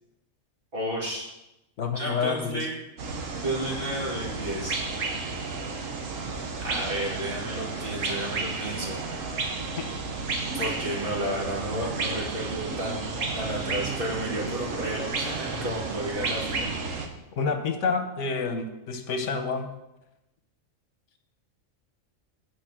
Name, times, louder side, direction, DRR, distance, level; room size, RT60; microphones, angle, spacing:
voice 1, 0.7-1.3 2.0-2.7 3.4-4.8 6.6-9.0 10.5-16.7, right 1 dB, 45° right, -3 dB, 2.3 m, -32 dB
voice 2, 1.8-2.7 9.8-9.9 17.3-19.7, left 5 dB, 70° left, 6 dB, 1.3 m, -28 dB
sound 1, 3.0-17.1, right 3 dB, 80° right, 1.4 m, -32 dB
9.2 x 4.8 x 6.1 m, 0.93 s
omnidirectional pair, 1.3 m